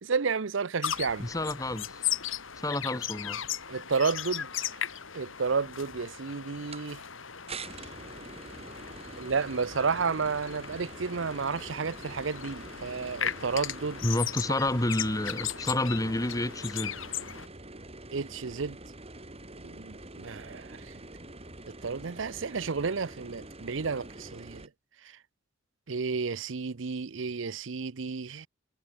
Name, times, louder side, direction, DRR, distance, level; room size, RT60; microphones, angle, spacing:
voice 1, 0.0-1.3 3.7-4.7 5.1-7.0 9.2-14.0 18.1-18.8 19.6-20.8 21.8-24.6 25.9-28.5, right 5 dB, 65° right, 0.7 m, -31 dB
sound 1, 0.8-17.5, left 9 dB, 75° left, 3.0 m, -37 dB
voice 2, 1.2-2.0 2.6-3.4 14.0-17.0, left 1 dB, 20° left, 1.7 m, -29 dB
sound 2, 6.7-6.8 7.5-24.7, right 2 dB, 30° right, 5.7 m, -46 dB
head